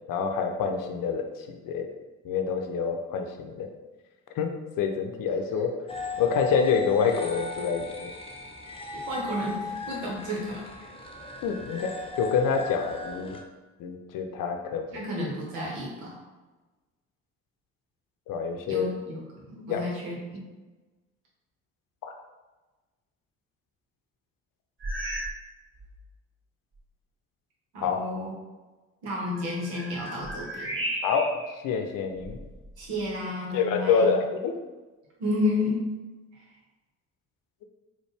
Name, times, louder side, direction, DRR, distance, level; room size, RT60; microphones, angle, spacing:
voice 1, 0.1-1.3 1.6-1.9 2.2-3.7 4.4-4.5 4.8-5.7 6.2-8.1 11.4-13.4 13.8-14.9 18.3-18.9 19.7-19.9 27.8-28.0 31.0-31.3 31.6-32.4 33.5-34.5, left 6 dB, 55° left, 4 dB, 0.6 m, -26 dB
sound 1, 5.9-13.4, left 4 dB, 15° left, 0.6 m, -37 dB
voice 2, 9.1-10.7 14.9-16.2 18.7-19.2 19.5-20.4 27.7-28.3 29.0-30.8 32.8-34.1 35.2-35.8, left 1 dB, 80° right, -3 dB, 1.2 m, -31 dB
sound 2, 24.8-25.4 25.7-26.1 26.7-26.8 29.2-31.6 32.1-33.1, right 1 dB, 30° right, 1.2 m, -35 dB
4.2 x 2.5 x 3.3 m, 1.2 s
hypercardioid pair, 50°, 39 cm